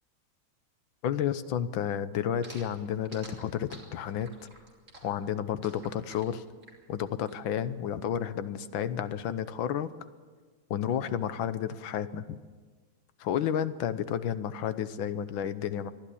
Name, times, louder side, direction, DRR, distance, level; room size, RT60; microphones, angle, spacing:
voice 1, 1.0-4.3 5.0-6.4 6.9-9.9 10.7-12.4 13.2-15.9, left 9 dB, 80° left, 13 dB, 1.6 m, -31 dB
sound 1, 2.4-7.4, right 2 dB, 35° right, 3.9 m, -50 dB
23.0 x 13.5 x 8.5 m, 1.4 s
omnidirectional pair, 2.1 m